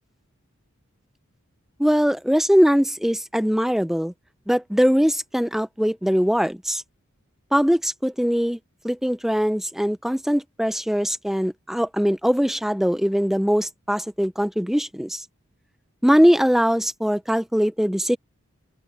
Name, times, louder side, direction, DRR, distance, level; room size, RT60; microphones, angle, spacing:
voice 1, 1.8-4.1 4.5-6.8 7.5-8.6 8.8-15.3 16.0-18.2, equal, ahead, 0.5 m, -21 dB
open air
head